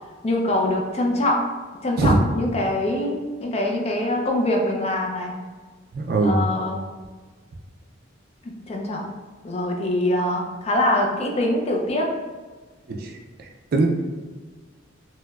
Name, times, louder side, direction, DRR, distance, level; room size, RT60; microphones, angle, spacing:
voice 1, 0.2-1.4 1.8-5.4 6.2-6.8 8.4-9.1 9.4-12.1, left 1 dB, 30° left, 0 dB, 0.4 m, -24 dB
voice 2, 5.9-6.4 12.9-13.9, right 2 dB, 50° right, 3 dB, 0.4 m, -22 dB
4.4 x 2.1 x 2.3 m, 1.4 s
head